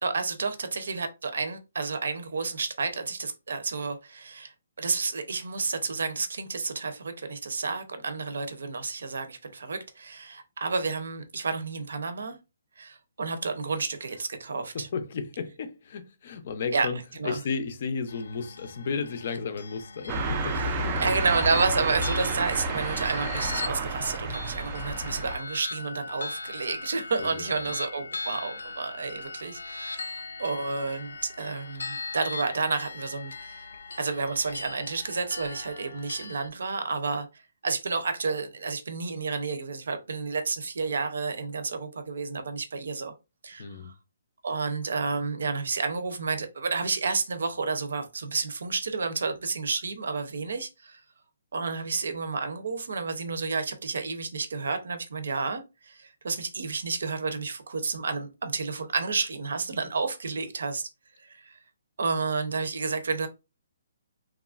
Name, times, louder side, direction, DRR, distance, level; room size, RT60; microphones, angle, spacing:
voice 1, 0.0-12.4 12.8-14.9 16.7-17.5 20.5-33.7 34.0-43.1 43.4-43.9 44.4-51.0 51.5-60.9 61.2-61.6 62.0-63.3, right 4 dB, 75° right, 0.6 m, -31 dB
voice 2, 14.7-21.0 27.2-27.7 43.6-43.9, left 5 dB, 40° left, 0.5 m, -34 dB
sound 1, 18.1-36.5, left 3 dB, 90° left, 0.5 m, -39 dB
sound 2, 20.1-25.4, right 3 dB, 25° right, 0.3 m, -30 dB
3.0 x 2.3 x 2.4 m
hypercardioid pair, 170°, 0 cm